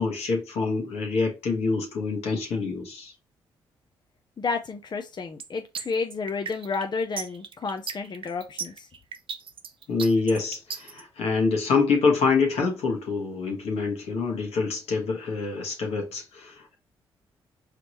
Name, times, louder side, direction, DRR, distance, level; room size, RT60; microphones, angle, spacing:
voice 1, 0.0-3.1 9.9-16.8, left 4 dB, 75° left, 1.5 m, -26 dB
voice 2, 4.4-8.9, left 4 dB, 45° left, 0.7 m, -31 dB
sound 1, 5.4-11.0, right 6 dB, 55° right, 0.8 m, -36 dB
5.0 x 3.2 x 3.0 m
supercardioid pair, 50°, 11 cm